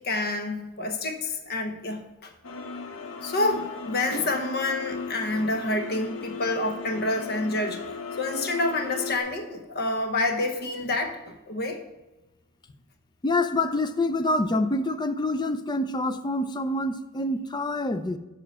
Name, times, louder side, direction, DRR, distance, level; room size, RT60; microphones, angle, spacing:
voice 1, 0.0-2.3 3.2-7.8 8.1-11.8, left 2 dB, 50° left, 5 dB, 0.9 m, -28 dB
sound 1, 2.4-9.2, left 4 dB, 90° left, 0.8 m, -37 dB
voice 2, 13.2-18.2, left 2 dB, 20° left, 10 dB, 0.5 m, -26 dB
7.3 x 5.7 x 5.5 m, 1.1 s
head